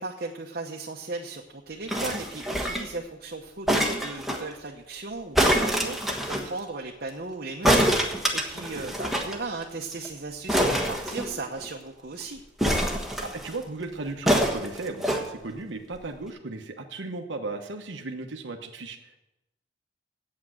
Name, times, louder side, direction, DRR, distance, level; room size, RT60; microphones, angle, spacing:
voice 1, 0.0-12.4, right 3 dB, 55° right, 0 dB, 1.0 m, -36 dB
sound 1, 1.9-3.0 3.7-4.4 5.3-6.5 7.6-9.3 9.6-9.7 9.9-10.1 10.5-11.7 12.6-13.5 14.3-15.2 16.0-16.1, equal, ahead, 1.3 m, -25 dB
voice 2, 8.6-8.9 13.2-19.0, right 3 dB, 85° right, 3 dB, 1.0 m, -36 dB
8.6 x 8.6 x 7.8 m, 0.93 s
head